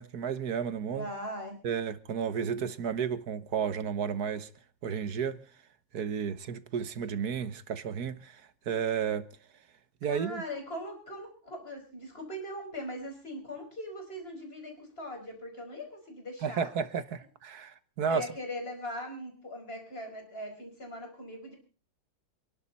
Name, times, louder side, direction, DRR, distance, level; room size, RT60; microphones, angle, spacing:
voice 1, 0.0-1.1 1.6-4.5 4.8-5.4 5.9-8.4 8.7-9.3 10.0-10.4 16.4-18.2, right 7 dB, 60° right, 1.5 m, -32 dB
voice 2, 0.9-1.6 10.1-16.7 18.1-21.6, left 1 dB, 30° left, 5.3 m, -40 dB
26.5 x 11.0 x 4.1 m
omnidirectional pair, 2.0 m